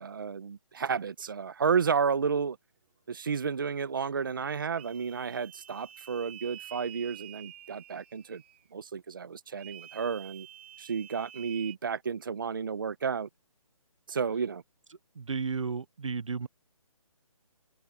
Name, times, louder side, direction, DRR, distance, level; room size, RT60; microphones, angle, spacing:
voice 1, 0.0-2.6 3.1-8.4 8.7-10.5 10.8-13.3 14.1-14.6, right 6 dB, 35° right, 1.0 m, -31 dB
sound 1, 4.8-8.6 9.6-11.7, right 11 dB, 20° right, 2.7 m, -49 dB
voice 2, 15.1-16.5, right 5 dB, 60° right, 1.1 m, -33 dB
hypercardioid pair, 175°, 18 cm